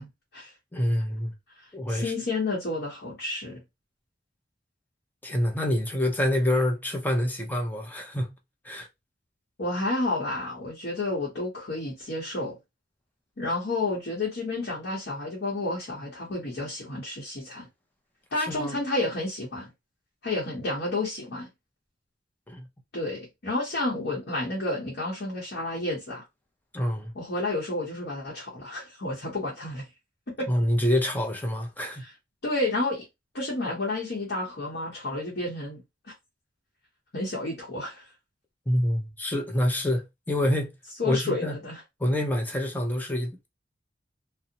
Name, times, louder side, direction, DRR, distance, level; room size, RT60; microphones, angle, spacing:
voice 1, 0.0-0.5 1.9-3.6 9.6-12.6 13.4-17.7 18.3-19.7 20.2-21.5 22.9-26.2 27.1-29.9 30.4-30.5 32.0-32.1 32.4-33.0 33.3-36.1 37.1-38.1 41.0-41.8, left 2 dB, 60° left, 0.9 m, -30 dB
voice 2, 0.7-1.3 1.7-2.1 5.2-8.4 8.6-8.9 18.4-18.8 22.5-22.7 26.7-27.1 30.5-32.0 38.7-40.7 41.0-41.5 42.0-43.5, left 1 dB, 10° left, 0.5 m, -26 dB
2.5 x 2.0 x 2.8 m
head